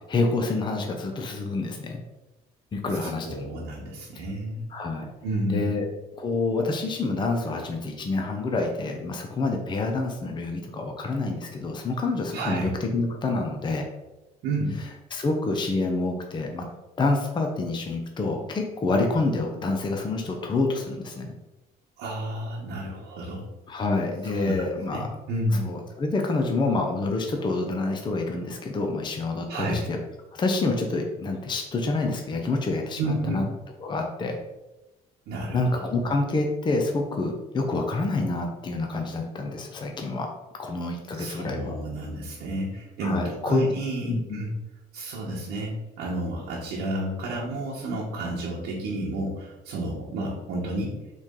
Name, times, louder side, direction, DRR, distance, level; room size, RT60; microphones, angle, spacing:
voice 1, 0.1-2.0 2.7-3.5 4.1-4.2 4.7-5.1 5.5-5.9 6.2-13.9 15.1-16.7 17.0-21.3 23.7-25.1 25.6-30.0 30.3-33.5 33.8-34.4 35.5-40.3 40.5-41.7 43.0-43.6 44.0-44.4, left 3 dB, 25° left, 2 dB, 0.6 m, -27 dB
voice 2, 3.0-4.6 5.2-5.7 12.3-12.7 14.4-14.8 22.0-23.4 24.2-24.6 24.9-25.7 29.5-29.9 33.0-33.4 35.3-35.6 41.2-44.5 44.9-50.9, right 1 dB, 85° right, -5 dB, 1.0 m, -31 dB
4.1 x 3.2 x 3.6 m, 1.0 s
cardioid pair, 110°, 17 cm